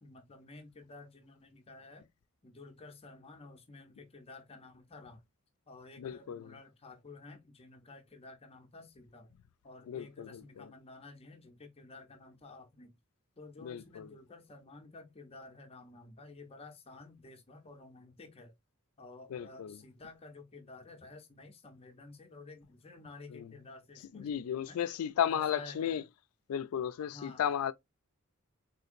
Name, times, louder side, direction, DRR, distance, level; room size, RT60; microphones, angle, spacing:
voice 1, 0.0-2.1 2.4-5.2 5.7-9.3 9.6-12.9 13.4-18.5 19.0-24.8 25.3-26.0 27.1-27.5, left 3 dB, 30° left, 0.6 m, -52 dB
voice 2, 6.0-6.5 9.9-10.7 13.6-14.1 19.3-19.8 23.3-23.5 24.1-26.0 26.5-27.7, left 9 dB, 85° left, 0.3 m, -34 dB
3.6 x 2.7 x 2.5 m
head